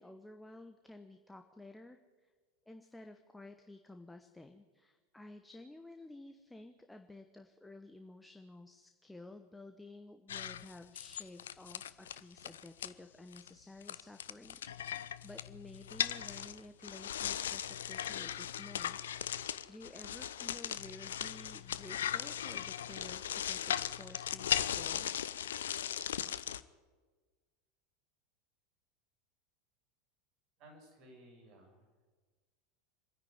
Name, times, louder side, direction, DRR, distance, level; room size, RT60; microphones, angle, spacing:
voice 1, 0.0-2.3 2.7-19.0 19.7-25.1, left 2 dB, 5° left, 6 dB, 1.1 m, -53 dB
sound 1, 10.3-12.9 13.3-13.5 13.8-26.6, left 10 dB, 65° left, 0.6 m, -38 dB
voice 2, 30.6-31.9, right 1 dB, 45° right, 2 dB, 6.8 m, -57 dB
26.0 x 10.5 x 9.6 m, 1.4 s
figure-of-eight pair, 80°, 0 cm